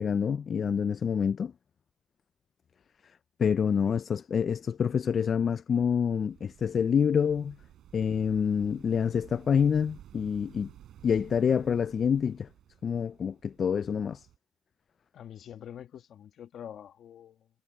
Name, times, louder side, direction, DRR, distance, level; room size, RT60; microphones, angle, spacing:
voice 1, 0.0-1.5 3.4-7.6 7.9-10.7 11.0-12.5 12.8-14.3, left 7 dB, 50° left, 0.4 m, -27 dB
sound 1, 6.2-14.4, right 11 dB, 70° right, 7.2 m, -54 dB
voice 2, 15.1-17.5, left 9 dB, 65° left, 1.8 m, -46 dB
supercardioid pair, 80°, 0 cm